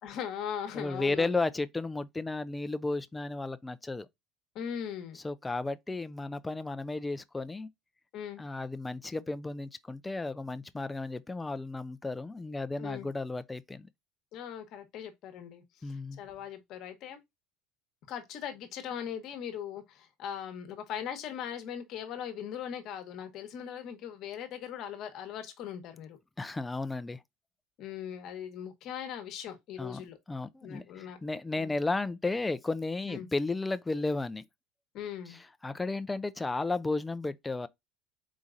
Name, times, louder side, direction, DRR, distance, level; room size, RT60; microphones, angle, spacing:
voice 1, 0.0-1.4 4.5-5.2 8.1-8.4 12.8-13.1 14.3-17.2 18.1-26.2 27.8-30.2 30.6-31.2 31.6-31.7 33.0-33.3 34.9-35.4, left 9 dB, 55° left, 1.0 m, -40 dB
voice 2, 0.7-4.1 5.2-7.7 8.4-13.9 15.8-16.2 26.4-27.2 29.8-30.0 30.3-34.4 35.3-35.4 35.6-37.7, left 3 dB, 10° left, 0.4 m, -33 dB
4.1 x 3.7 x 2.5 m
supercardioid pair, 110°, 0 cm